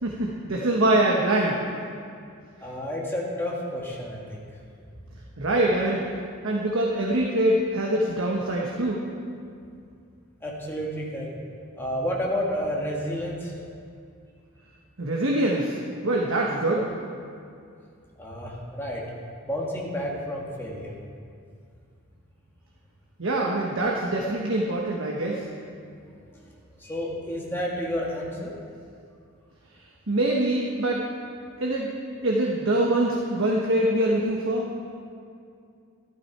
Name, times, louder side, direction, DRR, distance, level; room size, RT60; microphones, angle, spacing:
voice 1, 0.0-1.6 5.4-6.0 6.4-9.0 15.0-15.7 16.0-16.9 23.2-25.4 30.1-31.0 31.6-31.9 32.2-34.7, right 1 dB, 70° right, -2 dB, 1.2 m, -24 dB
voice 2, 2.6-4.4 10.4-11.3 11.8-13.5 18.2-19.0 19.4-21.0 26.8-28.5, equal, 10° left, -4 dB, 1.7 m, -30 dB
12.5 x 12.0 x 4.6 m, 2.4 s
head